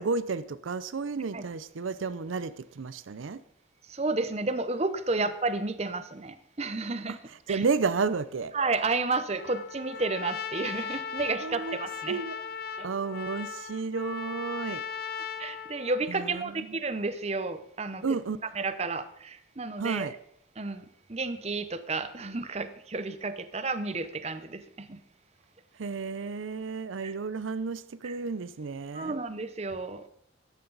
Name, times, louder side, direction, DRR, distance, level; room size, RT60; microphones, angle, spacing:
voice 1, 0.0-3.4 7.5-8.5 11.4-11.8 12.1-12.3 12.8-14.8 18.0-18.4 19.8-20.1 25.8-29.1, right 4 dB, 85° right, 15 dB, 0.5 m, -31 dB
voice 2, 3.9-7.2 7.5-7.7 8.5-12.2 12.8-12.9 15.4-20.2 20.6-25.0 27.0-27.1 28.0-28.2 28.9-30.1, right 3 dB, 35° right, 12 dB, 0.7 m, -32 dB
Trumpet, 9.4-16.2, left 6 dB, 50° left, 0.7 m, -38 dB
13.5 x 10.5 x 3.9 m, 0.68 s
head